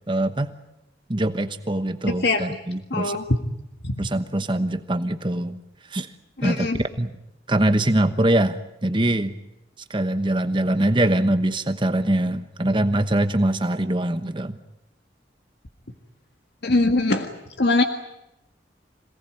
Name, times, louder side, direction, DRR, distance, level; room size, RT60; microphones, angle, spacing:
voice 1, 0.1-0.5 1.1-3.2 4.0-5.6 5.8-6.1 6.4-6.7 7.0-7.1 7.5-9.4 9.9-14.6, right 1 dB, 25° right, 9 dB, 1.1 m, -23 dB
voice 2, 2.9-3.2 3.8-4.1 6.4-6.8 16.6-17.3 17.6-17.8, left 2 dB, 65° left, 5 dB, 1.8 m, -21 dB
27.0 x 18.5 x 9.2 m, 0.90 s
head